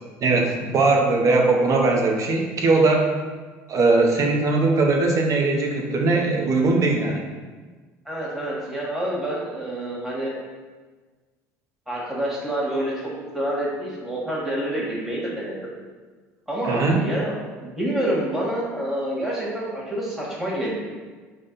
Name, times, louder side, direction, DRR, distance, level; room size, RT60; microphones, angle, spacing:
voice 1, 0.2-3.1 3.7-7.2 16.7-17.0, right 3 dB, 45° right, 1 dB, 0.8 m, -20 dB
voice 2, 8.0-10.3 11.9-12.9 13.3-15.7 16.5-20.7, right 1 dB, 5° right, -6 dB, 1.4 m, -27 dB
5.1 x 2.2 x 3.8 m, 1.4 s
hypercardioid pair, 70°, 8 cm